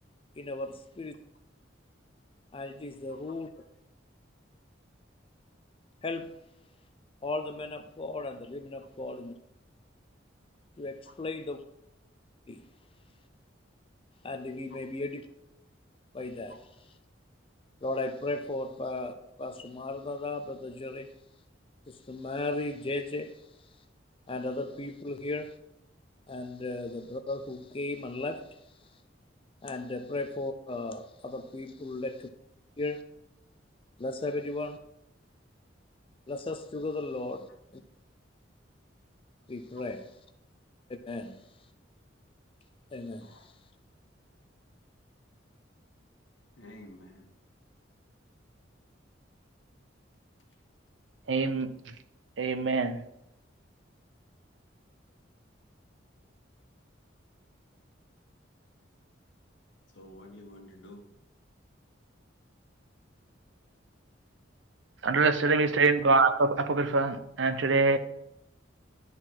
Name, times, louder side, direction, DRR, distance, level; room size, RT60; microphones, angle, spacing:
voice 1, 0.4-1.1 2.5-3.5 6.0-6.4 7.2-9.3 10.8-11.6 12.5-12.6 14.2-15.2 16.1-16.6 17.8-21.1 21.9-23.3 24.3-25.5 26.3-28.5 29.6-32.3 32.8-33.0 34.0-34.8 36.3-37.5 39.5-40.1 40.9-41.4 42.9-43.5, left 2 dB, 30° left, 8 dB, 0.5 m, -36 dB
voice 2, 46.6-47.3 59.9-61.0, left 1 dB, 70° left, 2 dB, 1.5 m, -49 dB
voice 3, 51.3-51.9 52.4-53.0 65.0-68.0, right 3 dB, 75° right, 11 dB, 0.6 m, -25 dB
11.0 x 4.1 x 4.4 m, 0.82 s
head